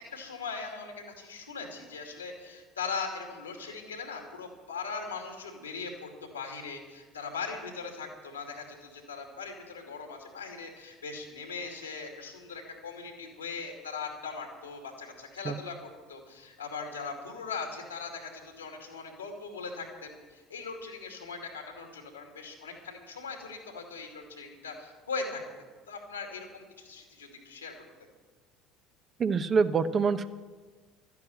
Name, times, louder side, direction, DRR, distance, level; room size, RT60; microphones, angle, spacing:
voice 1, 0.1-25.4 25.9-27.7, left 4 dB, 85° left, 2 dB, 2.6 m, -40 dB
voice 2, 29.2-30.3, right 5 dB, 35° right, 11 dB, 0.9 m, -25 dB
13.0 x 9.5 x 9.2 m, 1.4 s
figure-of-eight pair, 65°, 0 cm